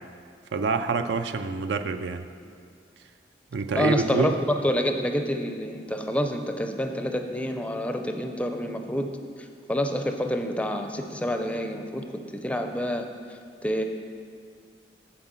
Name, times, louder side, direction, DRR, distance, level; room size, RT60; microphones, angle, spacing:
voice 1, 0.5-2.2 3.5-4.3, right 4 dB, 65° right, 9 dB, 0.4 m, -26 dB
voice 2, 3.7-9.1 9.4-12.1 12.3-13.1 13.6-13.8, equal, 5° left, 5 dB, 0.4 m, -28 dB
7.5 x 4.9 x 7.2 m, 2.1 s
head